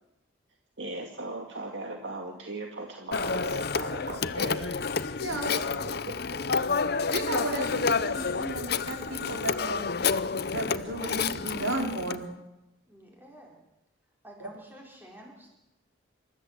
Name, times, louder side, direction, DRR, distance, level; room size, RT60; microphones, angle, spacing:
voice 1, 0.8-5.2 5.4-6.4, right 2 dB, 65° right, 2 dB, 2.1 m, -39 dB
Telephone, 3.1-12.2, left 5 dB, 55° left, 0.7 m, -29 dB
voice 2, 5.2-5.6 7.1-9.8 10.5-12.3, right 1 dB, 85° right, 2 dB, 4.6 m, -33 dB
voice 3, 12.9-13.6 14.2-15.5, right 1 dB, 10° right, -1 dB, 4.3 m, -50 dB
27.5 x 13.5 x 8.1 m, 0.94 s
head